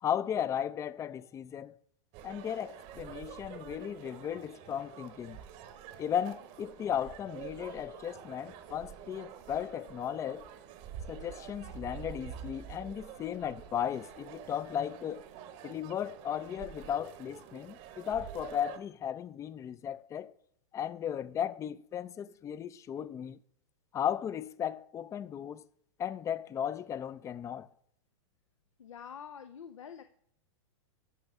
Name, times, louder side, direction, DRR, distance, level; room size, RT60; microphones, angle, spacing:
voice 1, 0.0-1.8 2.2-5.4 6.0-10.5 11.1-15.2 15.6-20.3 20.7-23.4 23.9-25.6 26.0-27.7, left 9 dB, 20° left, 0.3 m, -36 dB
sound 1, 2.1-18.8, right 9 dB, 45° right, 0.9 m, -47 dB
voice 2, 28.8-30.0, left 7 dB, 90° left, 0.5 m, -46 dB
11.5 x 5.5 x 3.5 m
hypercardioid pair, 110°, 16 cm